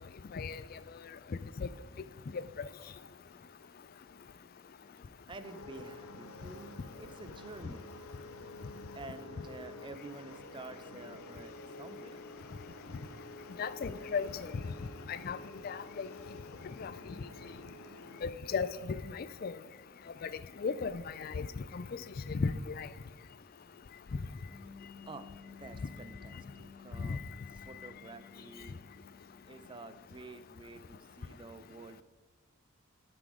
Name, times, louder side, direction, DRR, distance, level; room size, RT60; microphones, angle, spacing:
voice 1, 5.3-7.9 8.9-12.3 25.0-27.2 27.5-28.8 29.5-32.0, right 3 dB, 25° right, 0.5 m, -49 dB
sound 1, 5.4-18.2, left 2 dB, 90° left, 0.7 m, -49 dB
voice 2, 13.6-14.5 15.1-15.4 15.6-16.1 16.8-16.9 18.2-19.5 20.2-20.3 20.6-21.8 22.3-22.9 27.0-27.2, left 5 dB, 45° left, 0.3 m, -35 dB
sound 2, 24.5-30.9, left 5 dB, 10° left, 1.7 m, -55 dB
11.0 x 6.1 x 4.9 m
head